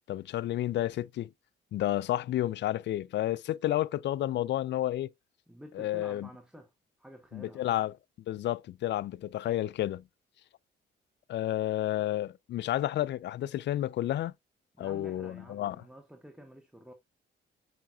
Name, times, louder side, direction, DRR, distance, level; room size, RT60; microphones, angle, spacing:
voice 1, 0.1-1.3 1.7-5.1 5.7-6.3 7.3-7.9 8.3-10.0 11.3-14.3 14.8-15.8, left 13 dB, 65° left, 0.4 m, -31 dB
voice 2, 5.5-6.7 7.0-7.8 14.8-16.9, equal, 5° right, 1.2 m, -50 dB
7.5 x 5.7 x 2.3 m
cardioid pair, 90°, 20 cm